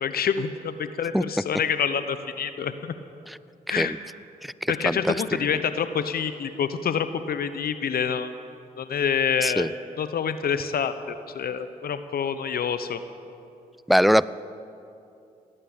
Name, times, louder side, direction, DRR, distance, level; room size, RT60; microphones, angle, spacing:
voice 1, 0.0-2.9 3.7-3.9 4.7-8.3 8.8-9.7 10.0-13.0, left 7 dB, 65° left, 11 dB, 0.8 m, -27 dB
voice 2, 4.4-5.4 9.4-9.7 13.9-14.3, equal, ahead, 18 dB, 0.4 m, -23 dB
17.5 x 9.0 x 8.7 m, 2.7 s
supercardioid pair, 45°, 17 cm